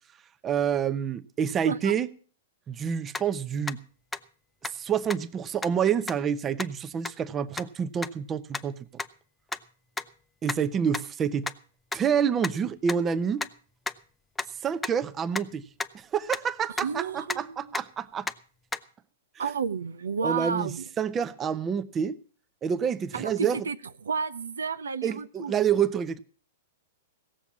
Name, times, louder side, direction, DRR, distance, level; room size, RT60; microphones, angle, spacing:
voice 1, 0.4-2.1 2.7-3.8 4.6-8.9 10.4-11.5 11.9-13.4 14.6-15.7 15.9-18.3 19.4-19.5 20.2-22.2 22.6-23.7 25.0-26.2, right 7 dB, 25° right, 0.7 m, -28 dB
sound 1, 3.1-3.2 3.7-3.8 4.1-4.2 4.6-4.7 5.1-5.2 5.6-5.7 6.1-6.2 6.6-6.7 7.0-7.1 7.6-7.7 8.0-8.1 8.5-8.6 9.0-9.1 9.5-9.6 10.0-10.1 10.5-10.6 10.9-11.0 11.4-11.5 11.9-12.0 12.4-12.5 12.9-13.0 13.4-13.5 13.9-14.0 14.4-14.5 14.8-14.9 15.3-15.4 15.8-15.9 16.3-16.4 16.8-16.9 17.3-17.4 17.7-17.8 18.3-18.4 18.7-18.8, left 4 dB, 10° left, 0.6 m, -31 dB
voice 2, 16.8-17.5 19.4-20.8 23.1-23.3 23.7-23.8 24.0-25.5, right 6 dB, 90° right, 0.7 m, -31 dB
16.5 x 7.1 x 7.3 m
hypercardioid pair, 120°, 0 cm